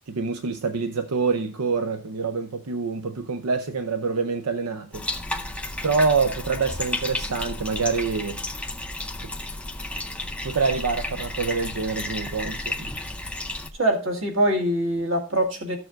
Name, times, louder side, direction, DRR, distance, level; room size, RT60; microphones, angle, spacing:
voice 1, 0.1-5.0 5.8-8.4 9.2-9.3 10.4-12.9, right 4 dB, 90° right, 0.6 m, -26 dB
Bathtub (filling or washing), 4.9-13.7, left 2 dB, 5° left, 0.5 m, -32 dB
voice 2, 13.8-15.8, right 1 dB, 60° right, 1.8 m, -23 dB
13.5 x 6.9 x 2.5 m
head